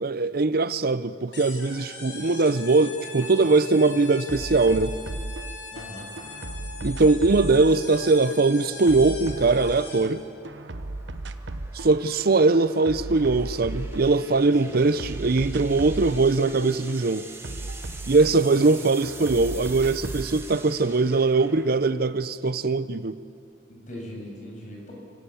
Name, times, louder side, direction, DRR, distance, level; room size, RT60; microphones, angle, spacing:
voice 1, 0.0-4.9 6.8-10.2 11.7-17.3 18.1-23.2, right 3 dB, 55° right, 14 dB, 0.6 m, -21 dB
sound 1, 1.3-10.2, left 4 dB, 70° left, 4.0 m, -41 dB
sound 2, 3.2-3.3 3.6-5.8 6.2-10.1 10.4-11.9 12.2-14.4 14.7-18.7 19.0-20.3, right 2 dB, 80° right, 1.0 m, -36 dB
sound 3, 5.6-23.3, right 3 dB, 15° right, 2.1 m, -47 dB
voice 2, 5.7-6.1 14.6-15.0 18.6-18.7 23.7-24.9, equal, 45° left, -1 dB, 6.8 m, -40 dB
29.5 x 17.0 x 8.6 m, 2.4 s
head